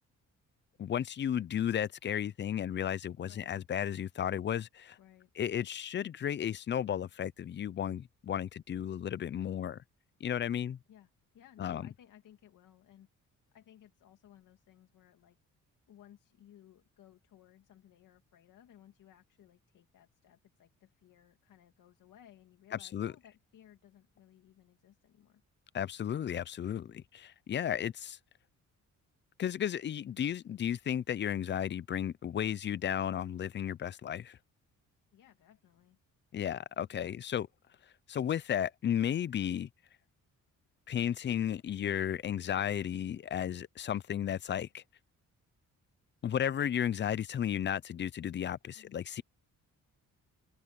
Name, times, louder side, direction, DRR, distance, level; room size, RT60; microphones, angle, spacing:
voice 1, 0.8-5.0 5.4-9.8 10.2-10.8 11.6-11.8 22.8-23.1 25.7-28.2 29.4-34.4 36.3-37.5 38.1-39.7 40.9-44.8 46.2-49.2, left 9 dB, 35° left, 0.4 m, -34 dB
voice 2, 3.3-3.6 5.0-5.3 10.9-13.1 13.5-15.4 15.9-25.4 35.1-36.0 36.9-37.2 48.7-49.0, left 11 dB, 80° left, 2.3 m, -60 dB
cardioid pair, 130°, 31 cm